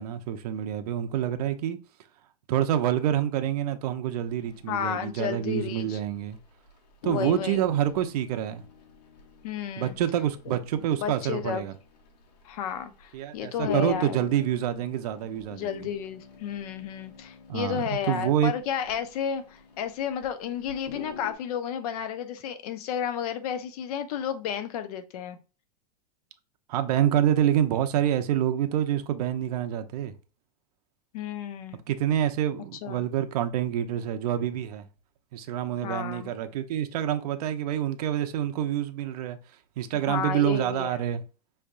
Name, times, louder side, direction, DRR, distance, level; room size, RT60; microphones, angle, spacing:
voice 1, 0.0-1.8 2.5-6.4 7.0-8.6 9.8-11.7 13.1-15.9 17.5-18.5 26.7-30.1 31.9-34.9 35.3-39.4 39.8-41.2, right 10 dB, 70° right, 0.7 m, -27 dB
sound 1, 4.1-6.4 6.7-6.8 7.0-20.3 20.6-21.3, left 6 dB, 85° left, 1.5 m, -44 dB
voice 2, 4.7-6.0 7.0-7.7 9.4-9.9 10.5-10.6 11.0-11.6 12.4-14.2 15.5-25.4 31.1-31.8 32.8-33.0 35.8-36.3 39.9-41.0, left 9 dB, 65° left, 0.8 m, -32 dB
5.5 x 3.4 x 2.5 m
supercardioid pair, 160°, 21 cm